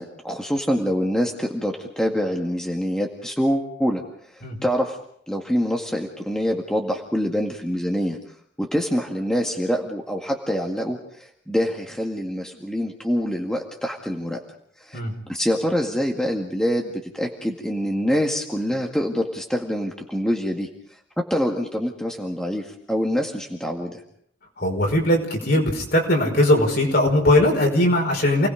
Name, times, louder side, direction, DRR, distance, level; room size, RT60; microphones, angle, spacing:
voice 1, 0.0-4.0 4.6-5.0 5.3-8.2 8.6-14.4 14.9-15.0 15.3-20.7 21.2-24.0, equal, 5° left, 1 dB, 2.0 m, -25 dB
voice 2, 24.6-28.5, left 1 dB, 55° left, 2 dB, 5.3 m, -19 dB
29.0 x 19.5 x 5.2 m, 0.66 s
head